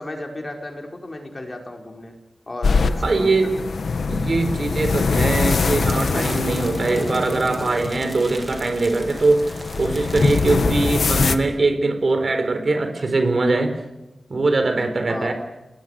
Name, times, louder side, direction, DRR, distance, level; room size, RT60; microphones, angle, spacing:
voice 1, 0.0-2.1 2.5-3.7 15.1-15.3, left 1 dB, 30° left, 2 dB, 5.0 m, -34 dB
sound 1, 2.6-11.3, left 4 dB, 85° left, 1.5 m, -23 dB
voice 2, 3.0-3.5 4.1-13.8 14.3-15.3, right 3 dB, 55° right, 7 dB, 4.4 m, -21 dB
sound 2, 5.5-10.5, right 2 dB, 25° right, 3.6 m, -40 dB
29.5 x 20.5 x 6.7 m, 0.99 s
wide cardioid pair, 115°, 0 cm